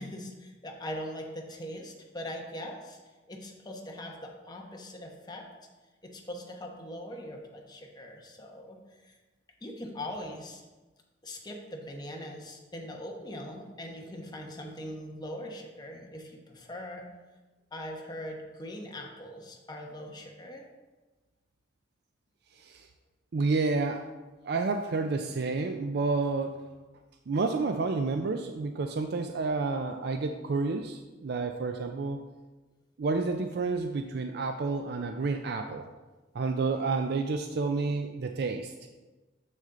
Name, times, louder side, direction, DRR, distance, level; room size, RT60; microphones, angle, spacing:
voice 1, 0.0-3.0 3.3-5.5 6.0-8.8 9.0-9.2 9.6-10.6 11.2-17.1 17.7-20.6, left 1 dB, 20° left, 1 dB, 1.0 m, -41 dB
voice 2, 22.6-22.9 23.3-24.1 24.4-26.6 27.3-32.2 33.0-35.9 36.3-38.7, right 3 dB, 60° right, 6 dB, 0.4 m, -30 dB
7.0 x 6.4 x 3.8 m, 1.2 s
head